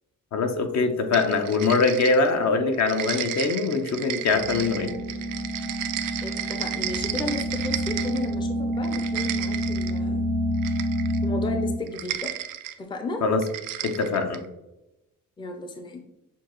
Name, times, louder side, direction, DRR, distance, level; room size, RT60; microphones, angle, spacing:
voice 1, 0.3-4.9 13.2-13.4 13.8-14.4, left 4 dB, 60° left, 6 dB, 0.7 m, -23 dB
sound 1, 1.1-2.4 2.7-8.3 8.7-10.0 10.6-11.2 11.9-12.8 13.4-14.5, right 12 dB, 85° right, 0.5 m, -33 dB
sound 2, 4.3-11.7, equal, 90° left, 1.6 m, -28 dB
voice 2, 6.2-10.3 11.2-12.3 12.8-13.2 15.4-16.0, left 2 dB, 15° left, 4 dB, 0.5 m, -34 dB
6.9 x 2.3 x 3.0 m, 0.93 s
cardioid pair, 105°, 32 cm